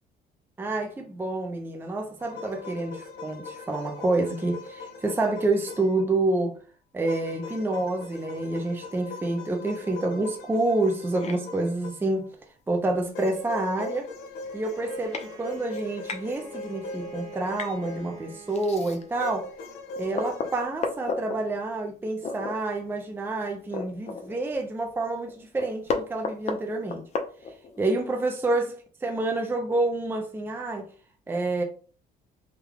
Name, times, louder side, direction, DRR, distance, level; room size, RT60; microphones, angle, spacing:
voice 1, 0.6-6.6 6.9-12.3 12.7-14.1 14.5-19.5 20.0-27.0 27.8-30.9 31.3-31.6, right 2 dB, 15° right, 0.5 m, -28 dB
sound 1, 2.2-6.1 7.1-12.4 13.1-18.4 19.2-20.6, left 3 dB, 80° left, 0.9 m, -40 dB
sound 2, 11.2-11.4 12.9-13.0 13.5-13.6 13.8-14.1 14.7-14.8 15.1-15.3 15.7-16.2 17.5-17.8 18.5-19.2 19.7-19.8 20.1-21.4 22.2-22.6 22.9-23.0 23.4-24.5 24.9-25.0 25.3-27.8, left 4 dB, 40° left, 0.6 m, -33 dB
Bowed string instrument, 14.4-19.6, right 4 dB, 30° right, 1.2 m, -47 dB
3.6 x 2.2 x 3.4 m
cardioid pair, 110°, 17 cm